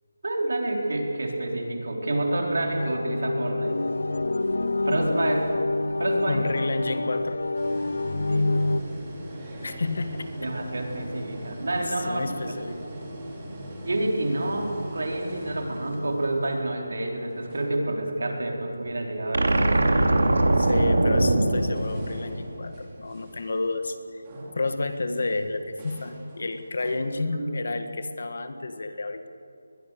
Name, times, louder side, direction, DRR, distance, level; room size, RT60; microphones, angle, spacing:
voice 1, 0.2-3.8 4.8-5.5 6.0-6.4 8.3-8.5 10.4-12.2 12.5-12.6 13.8-19.9 27.3-27.5, right 1 dB, 60° right, 1 dB, 4.5 m, -28 dB
sound 1, 2.7-8.8, left 2 dB, 75° left, 0.7 m, -27 dB
voice 2, 6.3-7.4 9.6-10.3 12.1-12.8 20.6-24.2 24.6-29.3, left 2 dB, 50° left, 9 dB, 1.6 m, -30 dB
sound 2, 7.5-19.1 19.4-20.8 21.4-26.9, equal, 15° right, 3.0 m, -41 dB
sound 3, 19.3-22.7, right 2 dB, 80° right, 2.8 m, -22 dB
22.5 x 21.0 x 6.8 m, 2.5 s
figure-of-eight pair, 180°, 0 cm